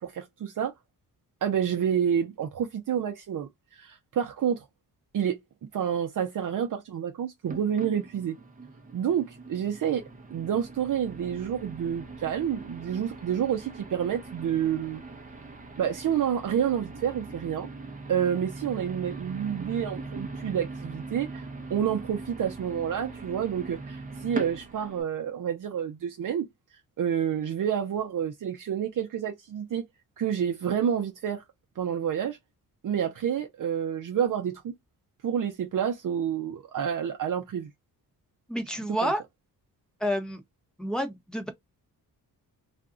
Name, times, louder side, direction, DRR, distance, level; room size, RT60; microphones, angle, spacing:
voice 1, 0.0-0.7 1.4-4.7 5.1-5.4 5.7-8.4 8.9-10.0 10.3-15.0 15.8-17.7 18.1-26.5 27.0-29.8 30.2-31.4 31.8-32.4 32.8-34.7 35.2-37.7 39.0-39.1, right 8 dB, 55° right, 0.7 m, -29 dB
sound 1, 7.5-25.0, right 3 dB, 20° right, 0.7 m, -41 dB
voice 2, 38.5-39.2 40.0-40.4 40.8-41.5, equal, ahead, 0.9 m, -29 dB
2.5 x 2.3 x 3.7 m
cardioid pair, 115°, 37 cm